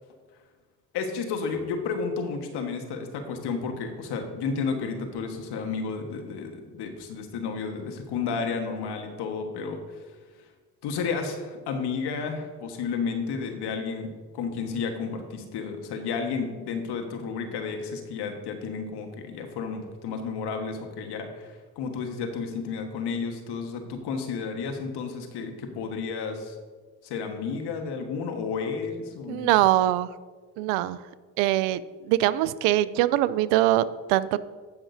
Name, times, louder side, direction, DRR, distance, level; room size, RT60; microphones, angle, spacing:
voice 1, 0.9-10.0 10.8-26.5 27.0-29.5, left 5 dB, 65° left, 5 dB, 1.5 m, -32 dB
voice 2, 29.3-30.1 30.6-31.0 31.4-31.8 32.1-34.4, right 14 dB, 85° right, 17 dB, 0.5 m, -22 dB
17.5 x 6.0 x 2.7 m, 1.4 s
supercardioid pair, 70°, 43 cm